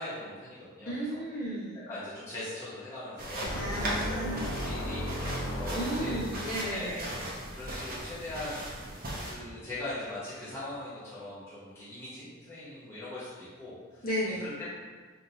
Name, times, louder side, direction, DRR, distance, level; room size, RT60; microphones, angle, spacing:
voice 1, 0.0-1.2 1.9-6.2 6.7-8.9 9.2-14.0 14.4-14.7, left 1 dB, 10° left, -12 dB, 0.9 m, -41 dB
voice 2, 0.9-1.8 3.5-4.6 5.7-7.1 14.0-14.5, equal, 40° left, -8 dB, 1.2 m, -34 dB
sound 1, 3.2-9.3, right 1 dB, 40° right, 0.8 m, -38 dB
sound 2, 3.4-6.7, equal, 60° left, 0.5 m, -35 dB
5.0 x 2.8 x 2.8 m, 1.5 s
head